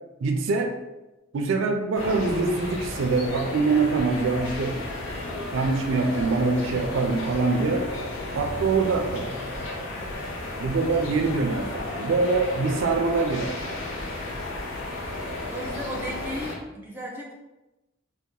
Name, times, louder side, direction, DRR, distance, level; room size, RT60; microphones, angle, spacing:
voice 1, 0.2-0.7 1.3-4.8 5.5-7.9 8.3-9.3 10.6-13.6, right 3 dB, 75° right, 4 dB, 0.4 m, -24 dB
sound 1, 1.9-16.6, left 2 dB, 90° left, 0.7 m, -33 dB
voice 2, 9.8-10.1 15.5-17.4, equal, 10° right, -2 dB, 0.5 m, -35 dB
2.8 x 2.2 x 3.7 m, 1.0 s
head